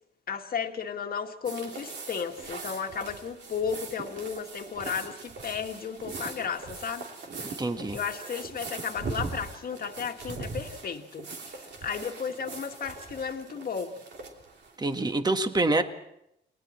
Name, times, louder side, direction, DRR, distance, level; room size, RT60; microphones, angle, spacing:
voice 1, 0.3-7.1 7.9-14.0, left 6 dB, 50° left, 1.8 m, -34 dB
sound 1, 1.5-15.1, right 4 dB, 60° right, 3.2 m, -41 dB
voice 2, 7.6-8.0 14.8-15.8, right 2 dB, 20° right, 1.6 m, -26 dB
29.5 x 20.0 x 4.4 m
cardioid pair, 90°, 20 cm